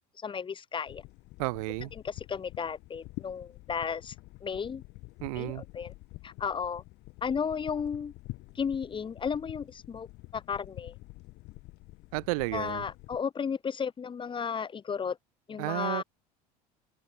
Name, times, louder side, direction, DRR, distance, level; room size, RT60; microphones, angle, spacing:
voice 1, 0.2-1.0 2.0-4.1 4.4-4.8 5.4-5.9 6.2-6.8 7.2-8.1 8.5-10.9 12.5-15.2 15.5-16.0, left 6 dB, 25° left, 0.9 m, -34 dB
sound 1, 0.9-13.2, left 21 dB, 55° left, 4.0 m, -48 dB
voice 2, 1.4-1.9 5.2-5.6 12.1-12.8 15.6-16.0, right 26 dB, 65° right, 0.4 m, -32 dB
figure-of-eight pair, 65°, 20 cm